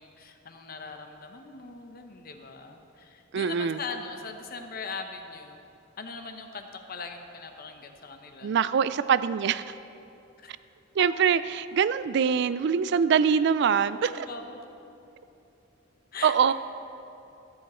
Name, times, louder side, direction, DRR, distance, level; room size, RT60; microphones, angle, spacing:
voice 1, 0.0-5.6 6.0-8.5 10.4-10.5 13.2-13.4 13.8-13.9 14.1-14.6 16.1-16.5, left 4 dB, 50° left, 5 dB, 0.8 m, -41 dB
voice 2, 3.3-3.8 8.4-9.6 11.0-14.3 16.2-16.5, right 7 dB, 60° right, 15 dB, 0.3 m, -24 dB
14.0 x 8.5 x 4.3 m, 2.8 s
head